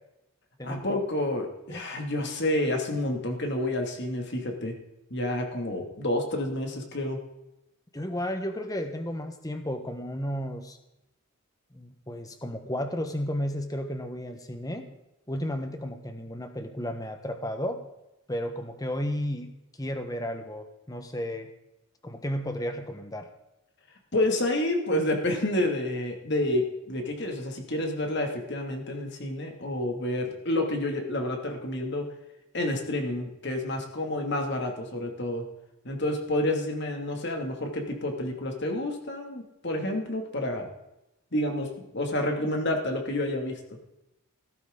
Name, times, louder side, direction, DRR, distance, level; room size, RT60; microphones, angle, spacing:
voice 1, 0.6-4.8 5.1-7.2 24.1-32.1 32.5-35.4 35.8-40.7 41.3-43.6, left 1 dB, 55° left, 2 dB, 2.5 m, -29 dB
voice 2, 7.9-10.8 11.7-14.9 15.3-17.8 18.3-19.5 19.8-21.5 22.0-23.3, equal, 15° left, 7 dB, 1.3 m, -33 dB
16.0 x 13.5 x 3.9 m, 0.92 s
head